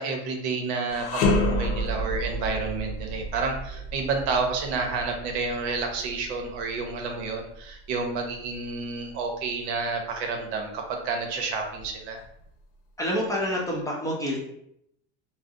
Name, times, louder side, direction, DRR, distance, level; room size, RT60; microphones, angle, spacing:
voice 1, 0.0-12.2, right 4 dB, 70° right, 3 dB, 0.8 m, -30 dB
sound 1, 0.9-10.1 10.6-10.7 11.6-12.5, left 1 dB, 80° left, 0.7 m, -31 dB
voice 2, 13.0-14.4, equal, 10° left, -4 dB, 0.6 m, -27 dB
2.5 x 2.0 x 3.6 m, 0.75 s
supercardioid pair, 120°, 33 cm